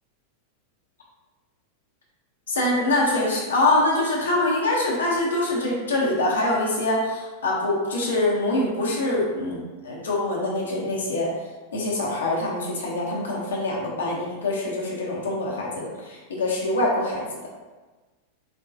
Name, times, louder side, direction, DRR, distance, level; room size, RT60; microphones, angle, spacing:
voice 1, 2.5-11.3 11.7-17.3, left 2 dB, 65° left, -3 dB, 0.8 m, -24 dB
4.1 x 2.2 x 2.6 m, 1.3 s
figure-of-eight pair, 90°, 0 cm